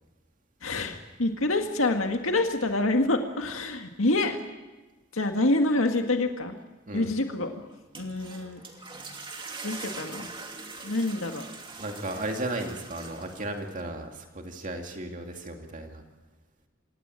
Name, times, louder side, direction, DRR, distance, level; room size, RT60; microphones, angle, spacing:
voice 1, 0.6-4.4 5.1-6.6 6.9-7.7 8.0-8.6 9.6-10.3 10.8-11.5, left 2 dB, 90° left, 4 dB, 2.0 m, -27 dB
sound 1, 7.7-13.8, right 3 dB, 25° right, 2.6 m, -42 dB
voice 2, 11.8-16.0, right 1 dB, 40° right, 3 dB, 2.2 m, -35 dB
26.5 x 17.5 x 9.1 m, 1.2 s
head